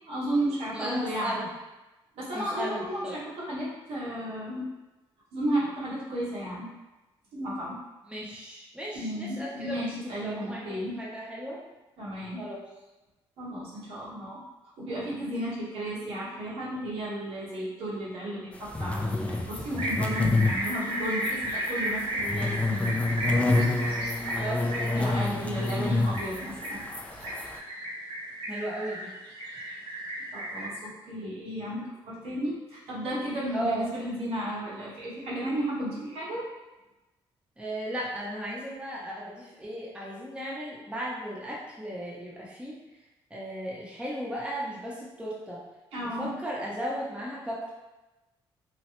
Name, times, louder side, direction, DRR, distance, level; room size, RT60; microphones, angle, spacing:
voice 1, 0.1-1.4 2.1-4.7 5.3-6.7 7.3-7.8 8.9-11.0 12.0-12.4 13.4-14.4 14.8-23.0 25.0-26.8 30.3-36.5 45.9-46.3, equal, 85° right, -8 dB, 1.3 m, -33 dB
voice 2, 0.7-1.5 2.3-3.2 8.0-9.9 10.2-11.6 12.4-12.6 24.3-25.4 28.5-29.1 33.5-33.9 37.6-42.8 43.3-45.6 46.0-47.7, right 1 dB, 10° right, -5 dB, 0.8 m, -35 dB
sound 1, 18.6-27.6, left 2 dB, 15° left, 0.3 m, -28 dB
sound 2, 19.8-30.7, right 1 dB, 65° right, 1.0 m, -34 dB
3.1 x 2.3 x 3.0 m, 1.1 s
cardioid pair, 90°, 10 cm